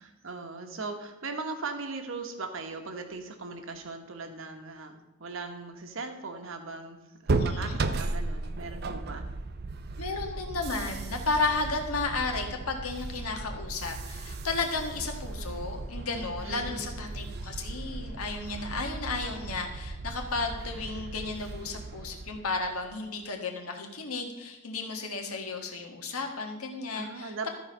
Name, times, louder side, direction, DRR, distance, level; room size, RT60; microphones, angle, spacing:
voice 1, 0.0-9.3 16.4-16.9 26.9-27.5, right 3 dB, 65° right, 5 dB, 1.1 m, -39 dB
sound 1, 7.3-23.0, right 3 dB, 45° right, 0.5 m, -35 dB
voice 2, 7.4-7.8 10.0-27.3, left 3 dB, 90° left, 3 dB, 1.6 m, -33 dB
13.5 x 4.8 x 5.5 m, 1.1 s
head